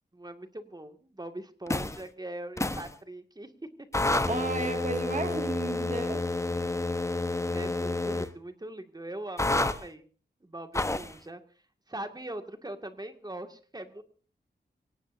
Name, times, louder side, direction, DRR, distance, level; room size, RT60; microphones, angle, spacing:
voice 1, 0.1-3.7 4.1-4.2 4.5-4.8 7.4-10.1 10.4-11.4 11.9-14.0, right 1 dB, 20° right, 7 dB, 2.0 m, -41 dB
sound 1, 1.7-2.0 2.6-2.9 3.9-8.3 9.4-9.8 10.7-11.1, left 2 dB, 15° left, 1.0 m, -29 dB
voice 2, 4.3-6.2, right 3 dB, 45° right, 5 dB, 2.0 m, -33 dB
24.5 x 18.0 x 2.6 m, 0.38 s
wide cardioid pair, 115°, 18 cm